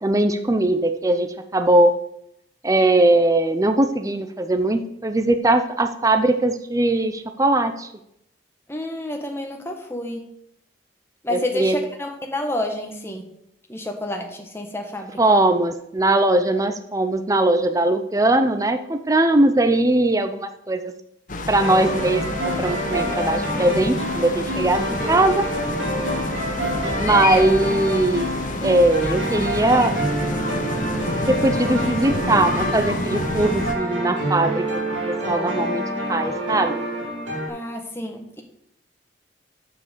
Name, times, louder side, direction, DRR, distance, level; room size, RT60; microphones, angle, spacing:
voice 1, 0.0-1.9 2.6-7.9 11.3-11.8 15.2-20.9 21.5-24.8 25.1-25.4 27.0-28.3 28.6-29.9 31.3-34.6 35.3-35.8 36.1-36.8, right 2 dB, 15° right, 7 dB, 0.6 m, -20 dB
voice 2, 8.7-10.3 11.2-13.2 13.7-15.4 22.9-23.6 37.5-38.4, left 1 dB, 15° left, 3 dB, 1.3 m, -30 dB
sound 1, 21.3-33.7, left 2 dB, 40° left, 0.9 m, -28 dB
sound 2, 21.6-37.5, right 1 dB, 85° right, 2.9 m, -27 dB
7.6 x 6.5 x 6.8 m, 0.76 s
head